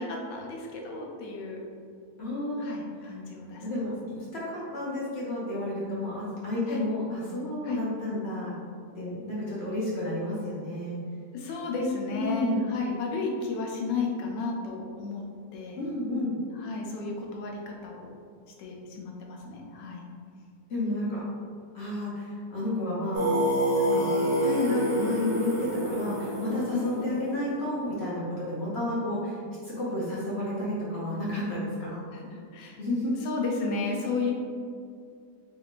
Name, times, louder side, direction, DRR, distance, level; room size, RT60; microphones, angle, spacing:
voice 1, 0.1-1.6 2.6-3.9 6.7-6.8 7.6-7.8 11.3-15.2 15.5-15.8 16.5-18.1 18.6-20.1 26.7-27.0 32.1-32.8 33.2-34.3, left 4 dB, 90° left, 0 dB, 1.3 m, -33 dB
voice 2, 2.2-2.7 3.6-3.9 4.3-8.5 8.9-11.0 12.2-12.6 15.8-16.4 20.7-21.3 21.7-23.3 23.7-24.1 24.4-29.4 29.6-32.0 32.8-33.1 33.8-34.0, left 1 dB, 55° left, -7 dB, 0.7 m, -31 dB
Singing, 23.1-27.9, right 1 dB, 75° right, 1.5 m, -27 dB
4.0 x 3.6 x 2.4 m, 2.3 s
omnidirectional pair, 1.8 m